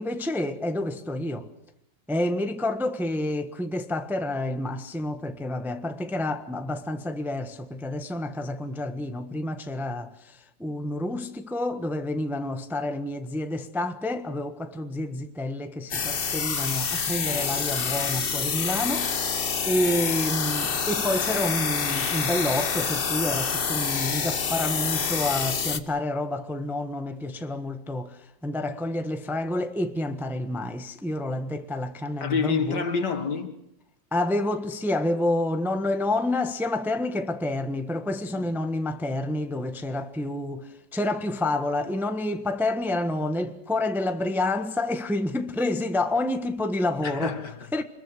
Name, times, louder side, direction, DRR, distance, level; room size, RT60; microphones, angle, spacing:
voice 1, 0.0-1.5 2.1-32.8 34.1-47.4 47.7-47.8, left 1 dB, ahead, 1.1 m, -29 dB
sound 1, 15.9-25.8, left 6 dB, 40° left, 1.0 m, -27 dB
voice 2, 32.2-33.6 38.3-38.5 47.0-47.7, left 5 dB, 60° left, 2.6 m, -28 dB
26.5 x 21.5 x 6.2 m
omnidirectional pair, 2.0 m